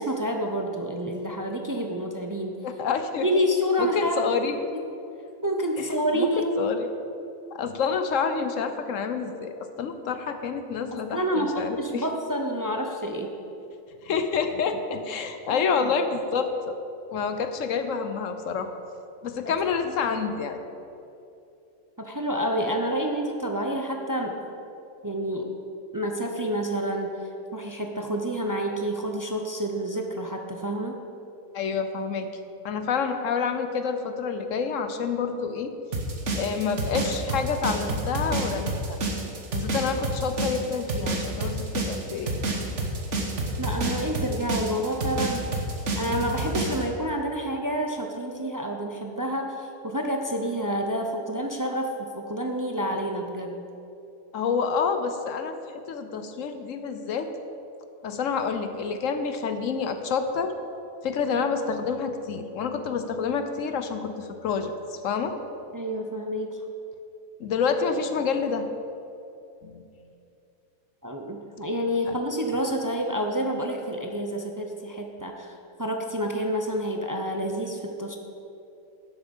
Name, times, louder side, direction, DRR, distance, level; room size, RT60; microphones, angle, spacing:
voice 1, 0.0-2.5 3.2-4.6 5.4-6.5 10.9-13.3 15.5-15.9 19.4-19.5 22.0-24.4 25.0-25.5 25.9-27.2 27.5-31.0 43.6-45.4 46.0-53.6 65.7-66.6 71.0-78.2, equal, 25° right, 3 dB, 0.4 m, -28 dB
voice 2, 2.6-3.3 3.8-4.7 5.8-6.3 6.6-6.9 7.5-12.0 14.0-16.7 17.1-18.7 19.2-20.6 31.5-32.3 32.6-35.7 36.4-39.0 39.5-42.4 54.3-55.6 55.9-57.3 58.0-60.5 61.0-65.4 67.4-68.7 69.6-69.9 72.1-72.2, left 5 dB, 65° left, 8 dB, 1.0 m, -28 dB
sound 1, 35.9-46.8, right 2 dB, 55° right, 1.6 m, -29 dB
11.5 x 8.0 x 5.3 m, 2.8 s
omnidirectional pair, 1.5 m